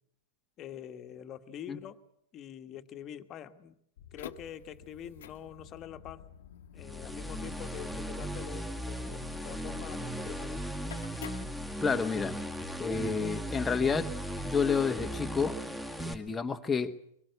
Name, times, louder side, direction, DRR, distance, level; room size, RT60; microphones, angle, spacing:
voice 1, 0.6-2.0 2.3-3.8 4.1-6.2 6.7-10.6, left 10 dB, 35° left, 1.5 m, -45 dB
sound 1, 4.0-12.2, left 9 dB, 65° left, 1.3 m, -50 dB
sound 2, 6.8-16.1, equal, 5° right, 2.0 m, -37 dB
voice 2, 11.8-12.4 12.8-14.1 14.4-15.6 16.0-16.9, left 5 dB, 15° left, 1.2 m, -30 dB
23.5 x 22.0 x 8.1 m
hypercardioid pair, 110°, 0 cm